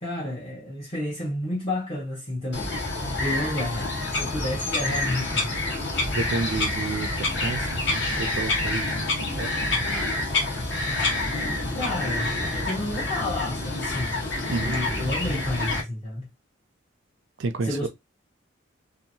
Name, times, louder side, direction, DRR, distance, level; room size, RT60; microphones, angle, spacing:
voice 1, 0.0-2.7 3.2-5.6 11.8-16.3 17.6-17.9, left 1 dB, 30° left, 0.8 m, -31 dB
Bird vocalization bird call bird song, 2.5-15.8, left 2 dB, 60° left, 1.2 m, -27 dB
voice 2, 6.1-9.8 14.5-14.8 17.4-17.9, right 3 dB, 60° right, 0.4 m, -31 dB
2.7 x 2.5 x 2.7 m
head